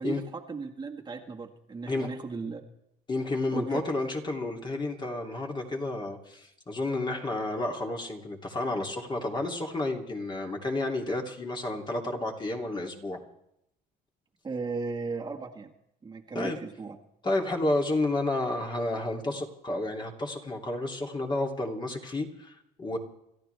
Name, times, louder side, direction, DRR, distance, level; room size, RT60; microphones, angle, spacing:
voice 1, 0.0-2.6 3.5-3.8 14.4-15.7 16.0-17.0, right 4 dB, 25° right, 1 dB, 1.8 m, -36 dB
voice 2, 3.1-13.2 16.3-16.6 17.2-23.0, left 2 dB, 25° left, 1 dB, 3.0 m, -31 dB
28.5 x 14.0 x 3.5 m, 0.79 s
cardioid pair, 110°, 17 cm